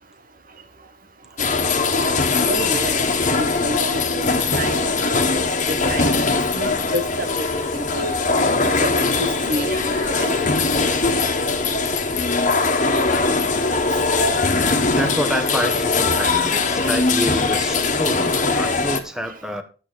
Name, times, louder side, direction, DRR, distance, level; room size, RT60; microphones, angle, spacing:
sound 1, 1.4-19.0, left 3 dB, 45° left, 1.6 m, -21 dB
voice 1, 2.5-3.0 3.3-6.1 6.5-7.5 7.7-8.2 8.8-10.6 16.8-16.9, right 1 dB, 55° right, 1.2 m, -29 dB
voice 2, 14.9-19.6, equal, 5° right, 1.5 m, -27 dB
11.0 x 8.4 x 4.7 m
head